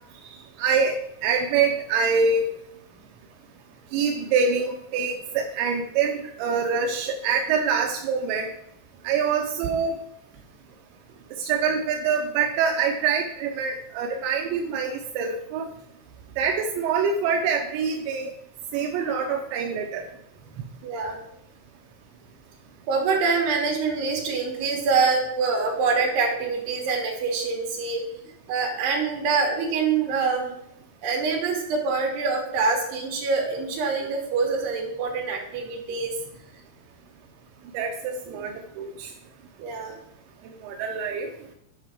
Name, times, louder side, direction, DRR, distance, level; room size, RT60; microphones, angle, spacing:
voice 1, 0.6-0.9 1.2-2.5 3.9-8.5 9.0-10.0 11.4-15.7 16.4-18.3 18.7-20.0 37.7-39.1 40.6-41.3, right 5 dB, 85° right, 2 dB, 3.0 m, -25 dB
voice 2, 20.8-21.2 22.9-28.0 28.5-30.6 31.0-36.1 38.4-38.5 39.6-40.0, right 4 dB, 65° right, -1 dB, 4.0 m, -25 dB
10.5 x 5.5 x 5.0 m, 0.76 s
omnidirectional pair, 5.3 m